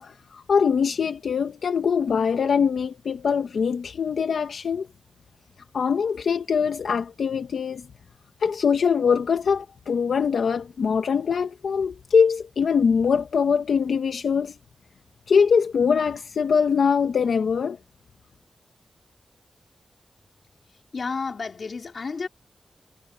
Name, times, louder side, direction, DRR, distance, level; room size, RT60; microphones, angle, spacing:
voice 1, 0.0-4.9 5.7-7.9 8.4-14.5 15.3-17.8, left 6 dB, 85° left, 1.2 m, -23 dB
voice 2, 20.9-22.3, left 4 dB, 55° left, 4.7 m, -31 dB
wide cardioid pair, 115°, 0 cm